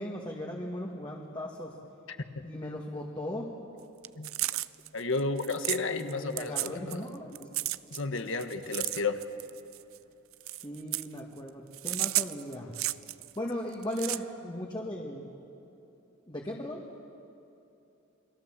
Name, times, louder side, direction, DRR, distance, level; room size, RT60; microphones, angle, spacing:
voice 1, 0.0-1.7 2.4-3.5 6.0-7.5 10.6-12.8 13.4-15.3 16.3-16.8, left 1 dB, 25° left, -1 dB, 1.9 m, -37 dB
sound 1, 4.0-6.1 6.4-7.1 7.3-10.0 10.3-11.2 11.7-13.3 13.7-14.2, right 17 dB, 90° right, 0.5 m, -32 dB
voice 2, 4.9-7.0 7.9-9.2, left 3 dB, 70° left, 8 dB, 1.6 m, -32 dB
29.5 x 22.0 x 7.6 m, 2.8 s
head